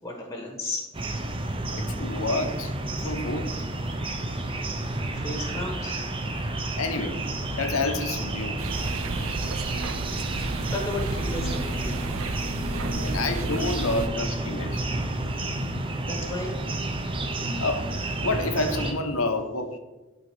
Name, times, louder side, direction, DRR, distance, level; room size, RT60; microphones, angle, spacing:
voice 1, 0.0-0.8 1.6-1.7 2.0-2.1 3.0-3.1 4.1-4.6 5.1-6.0 10.7-12.3 15.9-16.5, left 2 dB, 15° left, 1 dB, 1.1 m, -35 dB
sound 1, 0.9-18.9, right 2 dB, 25° right, 0.7 m, -30 dB
voice 2, 1.7-2.7 3.0-3.5 6.8-7.2 7.6-8.6 12.8-14.8 17.6-17.8 18.2-19.8, left 2 dB, 75° left, 7 dB, 0.9 m, -28 dB
sound 2, 8.6-14.1, right 3 dB, 70° right, 0.6 m, -33 dB
11.5 x 3.9 x 4.6 m, 1.1 s
head